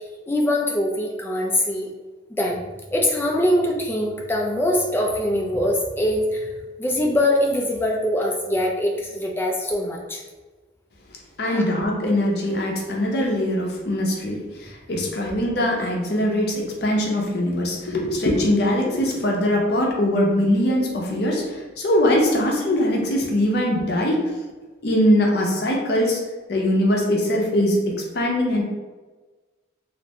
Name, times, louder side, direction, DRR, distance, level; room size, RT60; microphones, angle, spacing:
voice 1, 0.0-1.9 2.4-2.6 2.9-10.2 11.4-11.6, left 1 dB, 10° left, 0 dB, 0.3 m, -23 dB
voice 2, 11.4-24.3 24.8-26.2 26.5-28.6, left 1 dB, 55° left, -1 dB, 0.5 m, -22 dB
2.5 x 2.1 x 2.8 m, 1.3 s
head